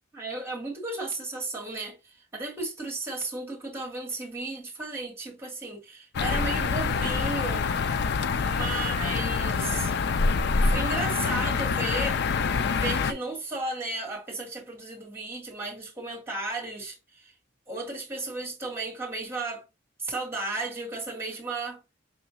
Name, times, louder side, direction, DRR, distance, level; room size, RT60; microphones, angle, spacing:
voice 1, 0.1-7.7 8.4-9.9 10.6-12.3 12.5-17.3 17.7-19.6 20.0-21.8, right 2 dB, 10° right, 1.9 m, -34 dB
sound 1, 6.1-13.1, left 4 dB, 55° left, 0.4 m, -26 dB
5.7 x 3.1 x 2.9 m
head